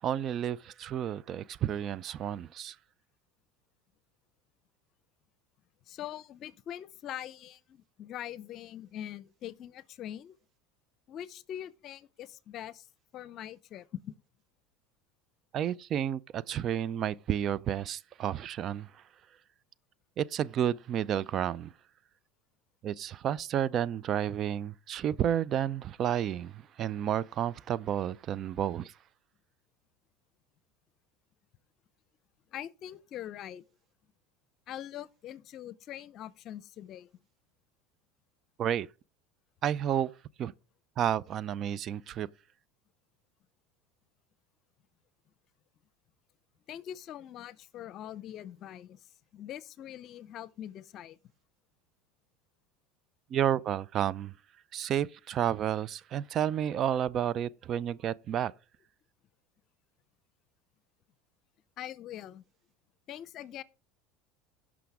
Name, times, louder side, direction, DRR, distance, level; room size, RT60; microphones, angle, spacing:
voice 1, 0.0-2.7 15.5-18.9 20.2-21.7 22.8-28.9 38.6-38.9 39.6-40.1 40.4-40.5 41.0-42.3 53.3-54.3 54.7-58.5, right 10 dB, 45° right, 0.4 m, -31 dB
voice 2, 5.9-10.3 11.1-12.9 13.1-14.1 32.5-33.6 34.7-37.1 46.7-49.0 49.3-51.2 61.8-62.4 63.1-63.6, left 11 dB, 50° left, 0.7 m, -43 dB
16.5 x 6.1 x 3.5 m
hypercardioid pair, 95°, 0 cm